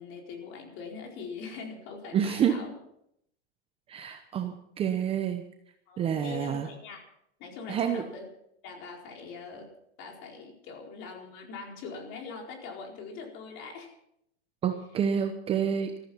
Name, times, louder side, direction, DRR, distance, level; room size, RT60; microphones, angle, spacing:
voice 1, 0.0-2.7 5.9-7.0 7.4-8.3 8.6-9.7 10.0-13.9, left 4 dB, 35° left, 1 dB, 4.5 m, -42 dB
voice 2, 2.1-2.6 3.9-5.4 6.0-6.7 7.7-8.0 14.6-16.0, right 8 dB, 15° right, 7 dB, 0.9 m, -28 dB
15.0 x 14.0 x 5.7 m, 0.75 s
hypercardioid pair, 140°, 34 cm